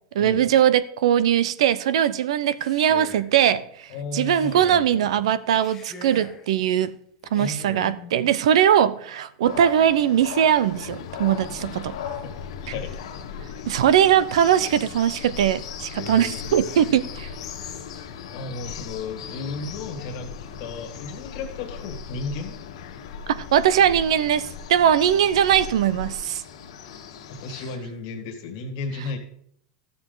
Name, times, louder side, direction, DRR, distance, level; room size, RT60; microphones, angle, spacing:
voice 1, 0.1-3.6 4.1-6.9 7.3-11.9 13.7-17.3 23.3-26.4, right 10 dB, 75° right, 0.6 m, -20 dB
Male speech man speaking, 2.4-3.3 4.1-4.9 5.5-6.5 7.2-8.0, left 4 dB, 10° left, 0.8 m, -44 dB
voice 2, 3.9-5.3 7.3-8.5 12.2-13.0 16.0-17.3 18.3-20.3 20.6-22.6 26.8-27.0 27.3-29.2, left 4 dB, 40° left, 1.8 m, -35 dB
sound 1, 9.4-27.8, left 8 dB, 75° left, 1.6 m, -40 dB
sound 2, 10.7-26.1, left 6 dB, 60° left, 1.0 m, -40 dB
13.5 x 7.0 x 3.9 m
supercardioid pair, 175°, 3 cm